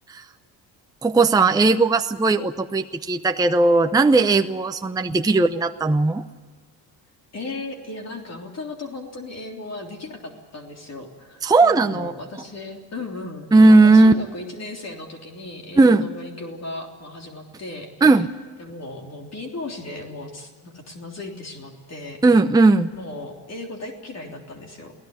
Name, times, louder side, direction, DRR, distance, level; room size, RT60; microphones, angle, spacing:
voice 1, 1.0-6.2 11.4-12.1 13.5-14.1 15.8-16.1 18.0-18.3 22.2-22.9, right 3 dB, 10° right, 7 dB, 0.7 m, -16 dB
voice 2, 5.0-5.3 7.3-18.3 18.6-22.2 22.9-24.9, left 2 dB, 40° left, 2 dB, 3.4 m, -36 dB
23.0 x 17.0 x 9.5 m, 1.5 s
cardioid pair, 105°, 40 cm